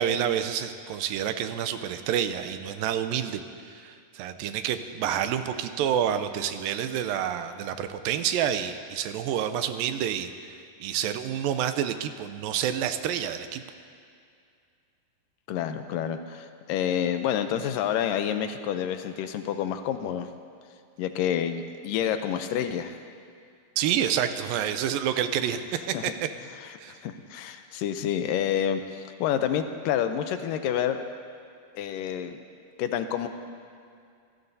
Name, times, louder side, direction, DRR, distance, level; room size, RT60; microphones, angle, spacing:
voice 1, 0.0-3.4 3.7-10.3 10.8-13.6 23.8-26.1 26.8-26.9, right 9 dB, 90° right, 9 dB, 2.4 m, -28 dB
voice 2, 15.5-20.3 21.0-23.0 25.9-26.0 26.6-26.8 27.0-31.0 31.8-32.4 32.8-33.3, left 9 dB, 80° left, 8 dB, 2.2 m, -28 dB
26.0 x 17.0 x 2.7 m, 2.3 s
omnidirectional pair, 4.0 m